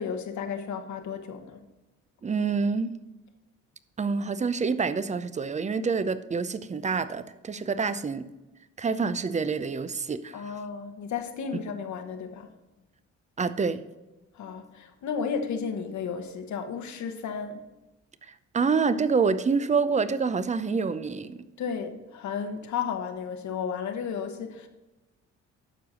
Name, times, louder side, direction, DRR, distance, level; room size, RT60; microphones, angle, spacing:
voice 1, 0.0-1.6 10.3-12.5 14.3-17.6 21.6-24.7, left 6 dB, 70° left, 1.2 m, -33 dB
voice 2, 2.2-2.9 4.0-8.3 8.8-10.5 13.4-13.8 18.5-21.4, right 5 dB, 25° right, 0.6 m, -27 dB
12.0 x 4.7 x 5.0 m
cardioid pair, 90°, 30 cm